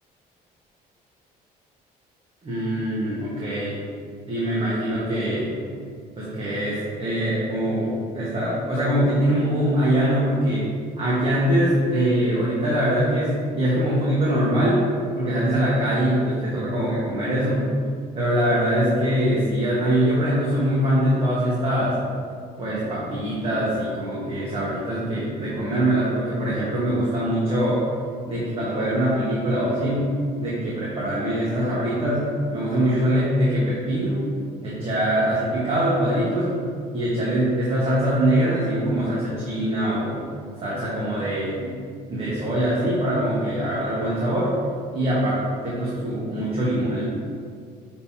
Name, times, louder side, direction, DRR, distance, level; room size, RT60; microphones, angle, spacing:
voice 1, 2.4-3.7 4.3-5.5 6.2-10.7 11.0-14.8 15.1-17.7 18.1-21.9 22.6-27.8 28.3-30.1 30.4-32.2 32.5-34.2 34.6-36.6 36.9-40.2 40.6-41.7 42.1-44.5 44.9-47.0, right 1 dB, 35° right, -8 dB, 1.5 m, -23 dB
9.1 x 3.8 x 2.8 m, 2.1 s
cardioid pair, 110°, 17 cm